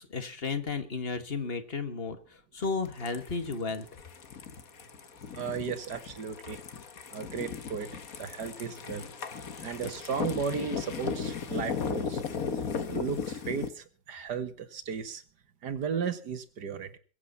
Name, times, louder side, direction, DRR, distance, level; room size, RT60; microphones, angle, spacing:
voice 1, 0.0-2.2 2.5-3.9, left 4 dB, 35° left, 9 dB, 1.9 m, -33 dB
sound 1, 2.8-13.7, left 6 dB, 60° left, 1.8 m, -36 dB
voice 2, 5.4-6.6 7.1-9.1 9.6-12.2 12.5-15.2 15.6-17.0, right 6 dB, 80° right, 11 dB, 2.1 m, -35 dB
22.0 x 8.4 x 5.7 m, 0.39 s
omnidirectional pair, 1.7 m